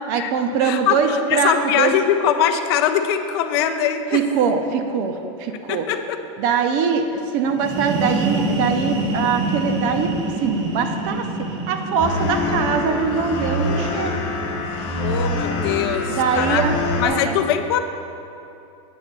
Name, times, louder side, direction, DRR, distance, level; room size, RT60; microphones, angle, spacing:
voice 1, 0.1-1.9 4.1-5.9 6.4-10.1 10.4-11.3 11.7-14.2 16.1-16.8 17.0-17.4, right 6 dB, 45° right, 6 dB, 0.6 m, -22 dB
voice 2, 0.6-4.2 5.7-6.2 15.0-16.6 17.0-17.8, left 9 dB, 55° left, 8 dB, 0.5 m, -22 dB
sound 1, 7.4-15.1, right 2 dB, 85° right, 1.9 m, -27 dB
sound 2, 12.0-17.1, left 2 dB, 30° left, 1.1 m, -25 dB
8.6 x 4.2 x 5.9 m, 2.7 s
supercardioid pair, 155°, 16 cm